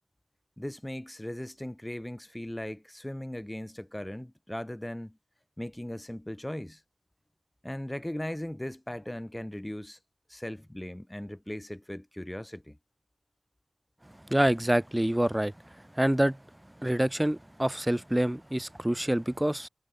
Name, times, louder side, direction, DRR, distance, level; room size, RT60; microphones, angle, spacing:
voice 1, 0.6-5.2 5.6-6.8 7.6-10.0 10.3-12.8, left 1 dB, 10° left, 0.8 m, -38 dB
voice 2, 14.3-15.5 16.0-16.4 16.8-19.7, right 1 dB, 10° right, 0.3 m, -26 dB
wide cardioid pair, 90°, 0 cm